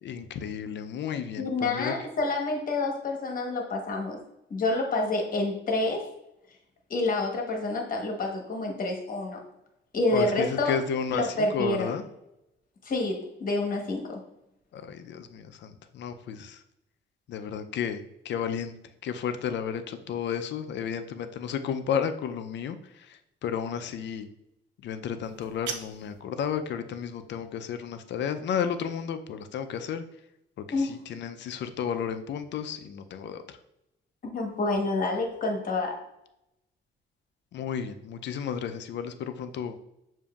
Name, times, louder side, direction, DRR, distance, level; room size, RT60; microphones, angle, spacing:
voice 1, 0.0-1.9 10.1-12.0 14.7-16.6 17.3-18.7 19.0-24.3 24.8-30.0 30.6-33.6 37.5-39.7, left 7 dB, 65° left, 9 dB, 0.5 m, -32 dB
voice 2, 1.4-4.2 4.5-6.1 6.9-9.4 9.9-10.7 11.1-11.9 12.8-14.2 30.7-31.0 34.3-36.0, left 2 dB, 45° left, 2 dB, 1.1 m, -28 dB
sound 1, 25.2-26.2, right 6 dB, 70° right, 0.5 m, -39 dB
6.9 x 2.7 x 2.3 m, 0.85 s
cardioid pair, 90°, 20 cm